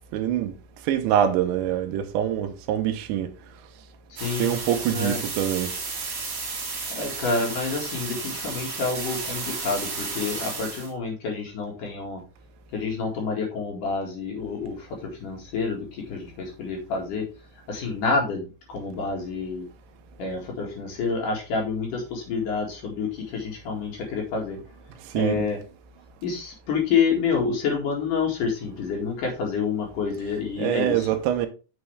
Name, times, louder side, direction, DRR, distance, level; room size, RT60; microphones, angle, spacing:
voice 1, 0.1-0.5 0.8-3.3 4.4-5.7 25.0-25.5 30.6-31.5, right 10 dB, 80° right, 3.1 m, -24 dB
voice 2, 4.1-4.5 4.9-5.2 6.9-12.2 12.7-14.9 15.2-17.2 17.7-19.6 20.2-24.6 25.1-25.6 26.2-31.1, left 5 dB, 55° left, 3.0 m, -28 dB
sound 1, 4.2-10.9, right 4 dB, 40° right, 2.4 m, -33 dB
7.2 x 6.7 x 3.3 m
omnidirectional pair, 5.2 m